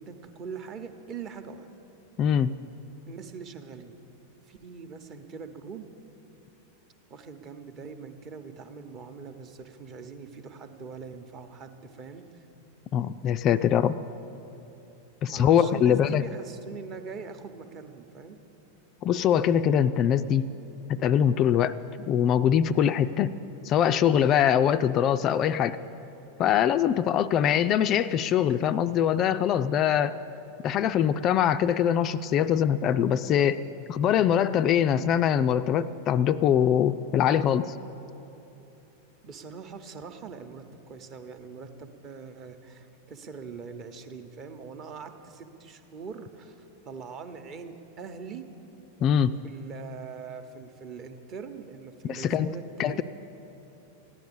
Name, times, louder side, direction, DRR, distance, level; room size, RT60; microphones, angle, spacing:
voice 1, 0.0-1.7 3.1-3.9 4.5-5.9 7.1-12.4 15.3-18.4 23.1-23.4 39.2-48.4 49.4-53.0, right 5 dB, 35° right, 8 dB, 0.9 m, -42 dB
voice 2, 2.2-2.5 12.9-14.0 15.2-16.2 19.0-20.5 20.9-23.4 23.6-25.8 26.4-30.2 30.6-33.6 33.9-37.7 49.0-49.3 52.1-52.5 52.8-53.0, left 9 dB, 35° left, 12 dB, 0.3 m, -23 dB
14.5 x 10.5 x 6.9 m, 2.9 s
figure-of-eight pair, 90°, 0 cm